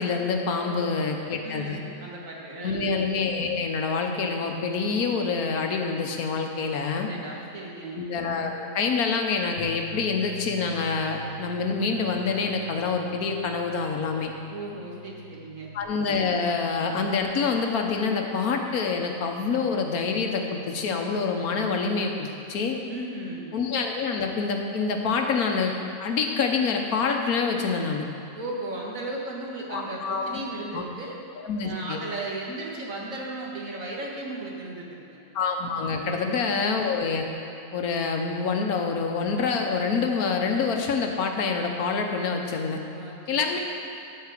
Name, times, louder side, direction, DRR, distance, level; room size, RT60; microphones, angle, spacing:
voice 1, 0.0-1.8 2.6-7.1 7.9-14.3 15.7-22.8 23.5-28.1 29.7-30.4 30.7-30.8 31.4-32.0 35.3-37.2 37.7-42.8 43.3-43.6, left 5 dB, 80° left, 3 dB, 1.4 m, -26 dB
voice 2, 0.6-1.1 1.4-2.9 6.9-8.0 14.5-15.7 22.9-23.5 28.3-31.2 31.6-35.2 36.0-36.4 42.9-43.6, right 2 dB, 60° right, -3 dB, 2.0 m, -36 dB
Bass guitar, 9.6-15.8, equal, 10° left, 1.2 m, -43 dB
12.5 x 4.8 x 7.6 m, 2.7 s
omnidirectional pair, 1.6 m